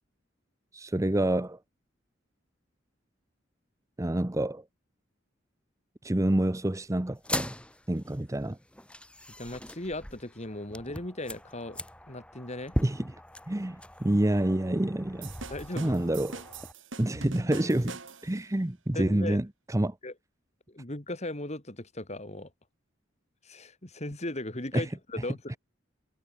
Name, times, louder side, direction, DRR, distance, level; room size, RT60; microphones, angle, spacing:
voice 1, 0.7-1.6 4.0-4.6 6.0-7.5 7.9-8.6 12.8-13.0 13.5-15.3 15.8-16.4 17.0-19.4 19.7-20.0 24.7-24.8, right 1 dB, 15° right, 0.7 m, -27 dB
sound 1, 7.1-16.7, left 1 dB, 5° left, 5.9 m, -39 dB
voice 2, 9.4-11.8 12.1-12.7 15.5-15.9 18.9-19.4 20.0-20.1 20.7-22.5 23.4-25.6, left 1 dB, 35° left, 3.3 m, -37 dB
sound 2, 15.2-18.4, right 3 dB, 85° right, 6.7 m, -43 dB
head